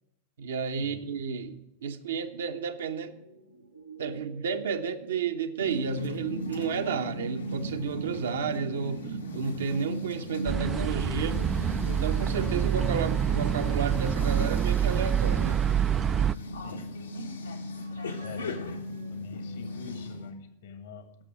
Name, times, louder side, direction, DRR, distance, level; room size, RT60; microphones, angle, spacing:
voice 1, 0.4-3.1 4.0-15.6, right 6 dB, 65° right, 1.0 m, -32 dB
sound 1, 3.1-10.2 10.8-20.3, right 2 dB, 90° right, 1.2 m, -55 dB
sound 2, 5.6-20.3, left 1 dB, 75° left, 1.5 m, -37 dB
sound 3, 10.5-16.3, right 9 dB, 20° right, 0.3 m, -26 dB
voice 2, 16.6-17.0 18.2-18.8 19.1-21.2, left 5 dB, 60° left, 1.5 m, -45 dB
11.5 x 6.8 x 8.8 m
figure-of-eight pair, 90°, 0 cm